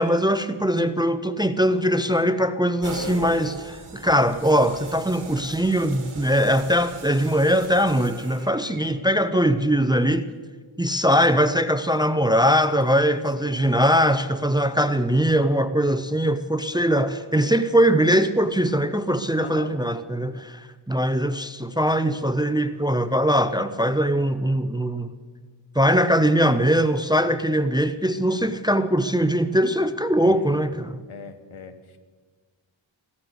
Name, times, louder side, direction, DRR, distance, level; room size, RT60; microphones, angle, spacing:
voice 1, 0.0-10.3 10.8-25.1 25.8-31.0, equal, 10° right, 11 dB, 0.5 m, -21 dB
sound 1, 2.8-8.8, right 3 dB, 75° right, 2.0 m, -39 dB
voice 2, 12.9-13.8 19.4-19.7 28.3-28.4 30.2-30.5 31.1-32.0, left 5 dB, 75° left, 9 dB, 1.3 m, -40 dB
16.0 x 13.0 x 6.4 m, 1.5 s
wide cardioid pair, 95°, 49 cm